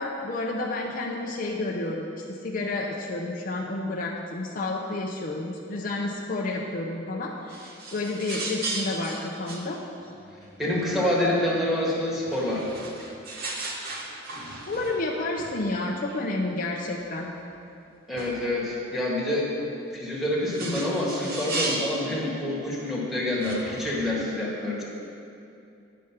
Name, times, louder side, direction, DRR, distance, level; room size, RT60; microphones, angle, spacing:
voice 1, 0.0-9.8 14.7-17.3, left 2 dB, 45° left, -1 dB, 0.6 m, -30 dB
sound 1, 7.5-11.0 12.1-15.1 15.4-15.6 16.1-16.2 16.9-17.0 17.4-17.5 18.2-18.4 20.0-22.0 22.9-23.0 23.3-24.0, right 2 dB, 50° right, 0.9 m, -36 dB
voice 2, 10.6-12.6 18.1-19.5 19.9-24.8, left 1 dB, ahead, -6 dB, 1.6 m, -27 dB
9.4 x 5.0 x 5.8 m, 2.6 s
head